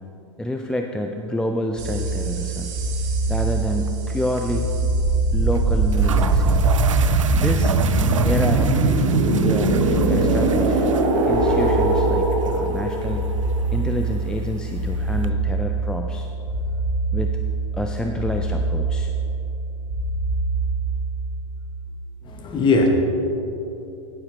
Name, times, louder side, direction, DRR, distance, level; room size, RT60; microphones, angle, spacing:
voice 1, 0.4-2.7 3.3-4.7 5.3-6.6 7.3-7.8 8.2-10.8 11.3-13.3 13.7-16.3 17.1-17.4 17.7-19.1, left 1 dB, 5° left, 3 dB, 0.4 m, -28 dB
sound 1, 1.8-21.4, right 3 dB, 45° right, 1.9 m, -22 dB
sound 2, 3.9-4.1 4.4-4.5 5.5-5.6 5.9-15.3, right 7 dB, 75° right, 0.5 m, -34 dB
voice 2, 22.2-22.9, left 3 dB, 30° left, 3 dB, 1.4 m, -19 dB
17.5 x 7.2 x 3.3 m, 2.9 s
figure-of-eight pair, 95°, 16 cm